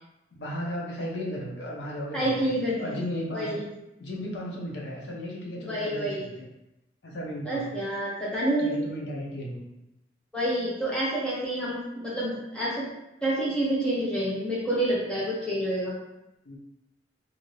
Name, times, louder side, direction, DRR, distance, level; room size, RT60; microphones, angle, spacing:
voice 1, 0.3-2.3 2.8-3.6 4.0-6.5 7.0-7.7 8.6-9.6 16.5-16.6, equal, 80° left, -2 dB, 0.7 m, -35 dB
voice 2, 2.1-3.0 3.3-3.6 5.7-6.2 7.4-8.8 10.3-12.9 13.2-15.9, right 1 dB, 5° left, -8 dB, 0.6 m, -28 dB
2.6 x 2.6 x 3.1 m, 0.91 s
head